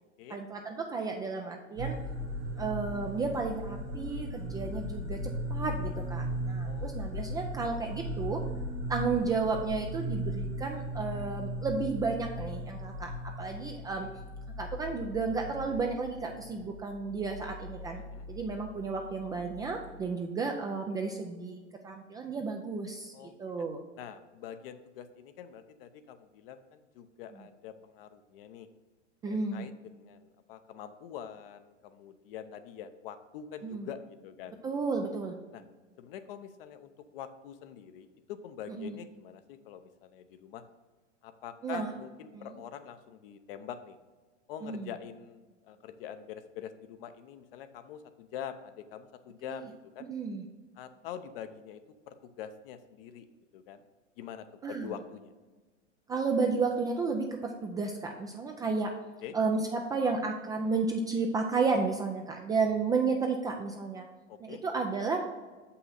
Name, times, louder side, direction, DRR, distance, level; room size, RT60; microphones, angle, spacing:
voice 1, 0.3-2.0 2.6-8.4 8.9-14.1 14.6-18.0 18.3-23.1 23.4-23.8 29.2-29.7 33.6-33.9 34.6-35.4 38.7-39.0 41.6-41.9 42.3-42.5 44.6-44.9 50.0-50.4 54.6-54.9 56.1-58.9 59.3-64.1 64.4-65.3, right 4 dB, 10° right, 3 dB, 0.3 m, -32 dB
sound 1, 1.8-20.1, equal, 70° right, 2.0 m, -38 dB
voice 2, 24.0-28.7 29.5-34.6 35.5-35.6 36.0-40.6 41.2-44.0 44.5-50.1 50.8-51.8 52.1-53.3 53.5-53.8 54.2-55.3 59.2-59.3 64.3-64.8, left 9 dB, 50° left, 10 dB, 0.7 m, -45 dB
7.0 x 5.6 x 4.1 m, 1.3 s
hypercardioid pair, 100°, 36 cm